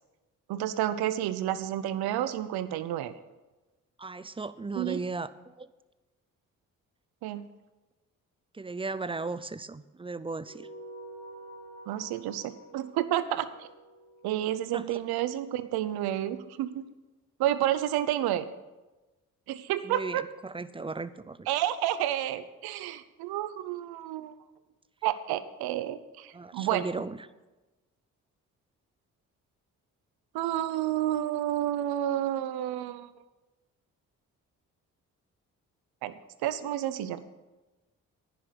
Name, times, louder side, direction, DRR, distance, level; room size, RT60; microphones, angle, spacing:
voice 1, 0.5-3.1 4.8-5.0 7.2-7.4 11.9-13.7 14.2-16.8 17.4-18.5 19.5-20.2 21.5-24.3 25.0-26.9 30.3-33.1 36.0-36.1 36.4-37.2, right 12 dB, 75° right, 14 dB, 0.7 m, -30 dB
voice 2, 4.0-5.7 8.5-10.7 14.7-15.0 19.8-21.4 26.3-27.3 37.0-37.2, right 3 dB, 15° right, 16 dB, 0.5 m, -36 dB
sound 1, 10.4-15.2, right 1 dB, 45° left, 3.4 m, -49 dB
10.0 x 6.0 x 8.2 m, 1.1 s
hypercardioid pair, 45°, 39 cm